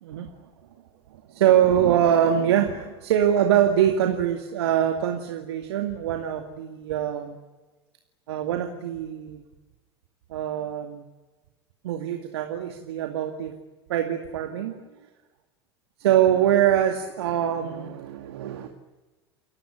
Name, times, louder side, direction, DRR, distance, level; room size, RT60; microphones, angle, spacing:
voice 1, 0.0-0.3 1.1-7.4 8.3-9.4 10.3-11.0 11.8-13.6 13.9-14.8 16.0-18.7, right 10 dB, 70° right, 5 dB, 2.3 m, -23 dB
30.0 x 16.0 x 10.0 m, 1.2 s
hypercardioid pair, 85°, 14 cm